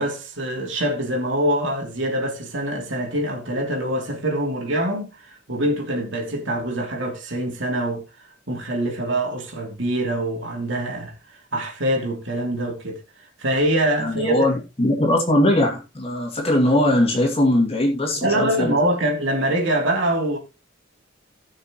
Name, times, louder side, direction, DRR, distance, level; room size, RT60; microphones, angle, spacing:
voice 1, 0.0-8.0 8.5-13.0 13.4-14.5 18.2-20.4, right 1 dB, 65° right, 3.1 m, -24 dB
voice 2, 14.0-18.7, left 1 dB, 30° left, 2.6 m, -20 dB
17.0 x 6.6 x 3.1 m
head